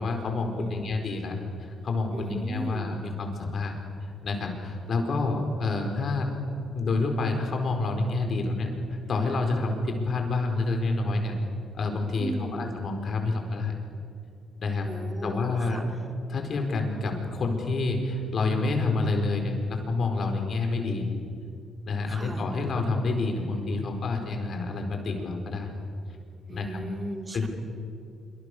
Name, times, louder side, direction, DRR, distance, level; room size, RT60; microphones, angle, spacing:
voice 1, 0.0-3.7 4.0-6.3 6.7-8.7 9.1-11.3 11.7-13.7 14.6-14.9 15.2-15.8 16.3-21.1 21.8-25.7 26.5-26.8 27.3-27.5, left 3 dB, 55° left, 3 dB, 4.7 m, -28 dB
voice 2, 0.5-1.0 2.1-3.0 12.2-12.8 14.8-15.8 22.1-22.5 26.5-27.5, right 1 dB, 25° right, 4 dB, 3.1 m, -36 dB
26.0 x 24.0 x 6.7 m, 2.4 s
cardioid pair, 90°, 0 cm